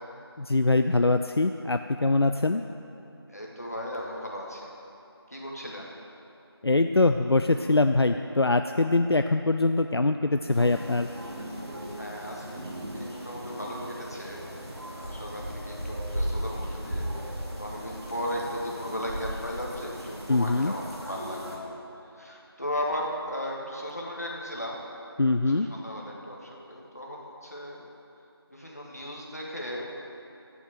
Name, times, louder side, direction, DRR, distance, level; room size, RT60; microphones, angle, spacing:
voice 1, 0.4-2.6 6.6-11.1 20.3-20.7 25.2-25.7, left 2 dB, 70° left, 7 dB, 0.4 m, -23 dB
voice 2, 3.3-4.7 5.3-5.9 12.0-14.4 14.9-17.0 17.6-21.6 22.1-24.8 25.7-27.8 28.5-29.8, equal, 40° left, -2 dB, 1.4 m, -36 dB
sound 1, 10.5-21.6, equal, 80° right, 2.5 m, -37 dB
7.9 x 7.5 x 7.9 m, 2.9 s
figure-of-eight pair, 180°, 14 cm